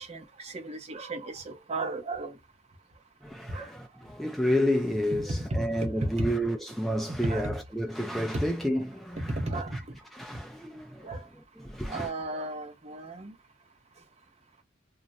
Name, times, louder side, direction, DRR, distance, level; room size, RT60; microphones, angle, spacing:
voice 1, 0.0-2.3 3.5-3.7 5.5-6.3 7.1-7.6 8.3-8.4 9.2-9.8 11.0-11.2 11.9-13.3, right 2 dB, 35° right, 0.7 m, -34 dB
voice 2, 3.2-9.4 9.7-9.8 10.1-12.1, equal, ahead, 0.3 m, -30 dB
2.4 x 2.1 x 3.9 m
head